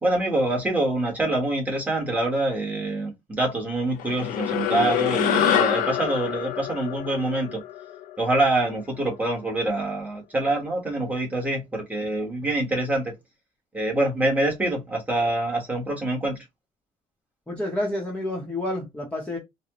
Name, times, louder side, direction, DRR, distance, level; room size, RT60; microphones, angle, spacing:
voice 1, 0.0-7.6 8.2-13.1 13.7-16.4, right 2 dB, 10° right, 1.1 m, -25 dB
sound 1, 4.0-8.7, left 11 dB, 85° left, 0.5 m, -26 dB
voice 2, 17.5-19.4, left 1 dB, 10° left, 0.8 m, -29 dB
4.1 x 2.1 x 2.9 m
cardioid pair, 155°, 14 cm